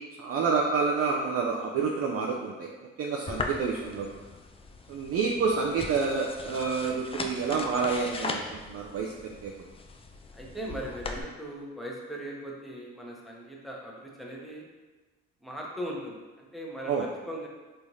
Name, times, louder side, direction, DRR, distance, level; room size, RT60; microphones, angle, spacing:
voice 1, 0.2-2.7 3.0-4.1 4.9-9.5 16.9-17.0, right 5 dB, 50° right, -1 dB, 0.5 m, -28 dB
sound 1, 3.3-11.2, left 3 dB, 20° left, 0.3 m, -39 dB
voice 2, 10.3-14.6 15.4-17.5, right 1 dB, ahead, -3 dB, 0.8 m, -39 dB
3.4 x 3.1 x 2.7 m, 1.2 s
supercardioid pair, 60°, 30 cm